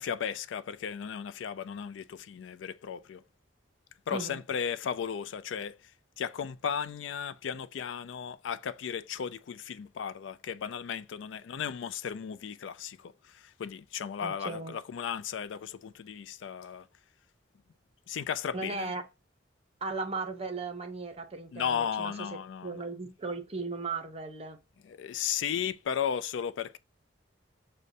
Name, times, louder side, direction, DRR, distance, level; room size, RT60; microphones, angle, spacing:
voice 1, 0.0-3.2 4.1-5.8 6.2-16.9 18.1-18.9 21.5-22.8 24.8-26.8, left 8 dB, 75° left, 0.3 m, -35 dB
voice 2, 4.1-4.4 14.2-14.8 18.5-19.0 19.8-24.6, right 3 dB, 30° right, 0.7 m, -37 dB
6.4 x 2.2 x 2.6 m
head